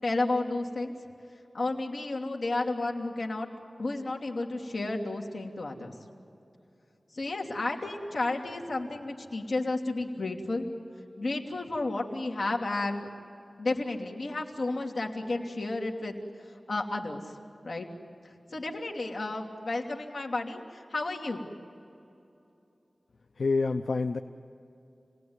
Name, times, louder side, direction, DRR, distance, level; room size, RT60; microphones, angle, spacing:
voice 1, 0.0-0.9 1.5-3.5 3.8-5.9 7.1-10.7 11.2-13.1 13.6-16.2 16.7-17.2 17.6-17.9 18.5-21.5, left 2 dB, 70° left, 0 dB, 2.9 m, -32 dB
voice 2, 23.4-24.2, left 3 dB, 85° left, 7 dB, 0.7 m, -27 dB
29.5 x 18.5 x 9.6 m, 2.9 s
wide cardioid pair, 70°, 0 cm